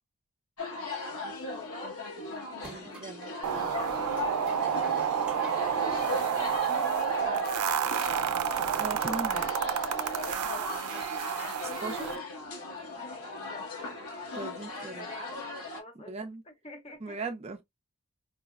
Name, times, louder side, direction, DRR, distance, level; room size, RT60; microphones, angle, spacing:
sound 1, 0.6-15.8, left 2 dB, 80° left, 1.4 m, -38 dB
voice 1, 1.4-2.0 4.2-7.2 7.5-8.3 10.4-10.8 13.3-14.0 15.0-15.4 15.8-16.2 16.4-17.3, left 1 dB, 25° left, 0.7 m, -49 dB
sound 2, 2.5-3.1 4.1-6.8, right 2 dB, 5° right, 1.0 m, -51 dB
voice 2, 2.6-3.3 8.8-9.5 11.6-12.3 14.3-15.1 16.1-16.4 17.0-17.6, right 3 dB, 30° right, 0.4 m, -38 dB
sound 3, 3.4-12.2, right 8 dB, 90° right, 0.4 m, -30 dB
4.5 x 2.1 x 2.3 m
head